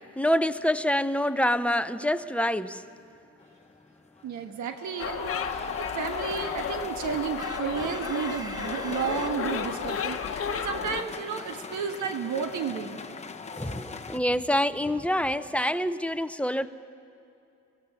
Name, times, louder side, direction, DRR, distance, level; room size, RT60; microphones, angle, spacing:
voice 1, 0.2-2.8 7.8-7.9 13.6-16.7, left 1 dB, 5° left, 11 dB, 0.7 m, -26 dB
sound 1, 3.4-3.8 4.2-14.2, left 5 dB, 20° left, 1.0 m, -39 dB
voice 2, 4.2-13.0, right 6 dB, 75° right, 7 dB, 1.4 m, -32 dB
sound 2, 5.0-11.0, left 7 dB, 50° left, 1.1 m, -33 dB
sound 3, 7.4-9.8, right 1 dB, 15° right, 1.2 m, -41 dB
23.5 x 17.5 x 6.8 m, 2.6 s
cardioid pair, 90°, 30 cm